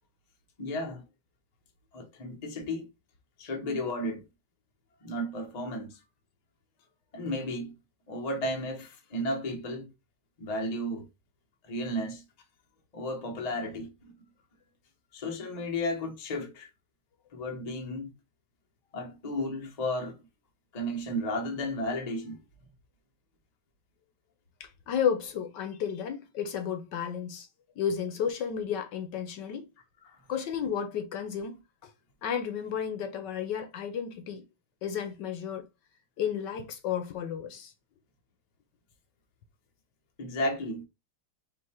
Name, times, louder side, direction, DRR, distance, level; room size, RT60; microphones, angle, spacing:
voice 1, 0.6-1.0 1.9-2.9 3.4-4.2 5.0-6.0 7.1-7.7 8.1-9.9 10.4-11.1 11.6-12.2 12.9-14.1 15.1-16.7 17.3-18.1 18.9-20.2 20.7-22.4 30.0-30.2 40.2-40.8, left 1 dB, 40° left, 0.5 m, -33 dB
voice 2, 24.6-27.5 27.8-29.7 30.3-31.9 32.2-34.5 34.8-35.7 36.2-37.7, left 8 dB, 65° left, 1.2 m, -32 dB
3.8 x 2.9 x 4.3 m
omnidirectional pair, 2.2 m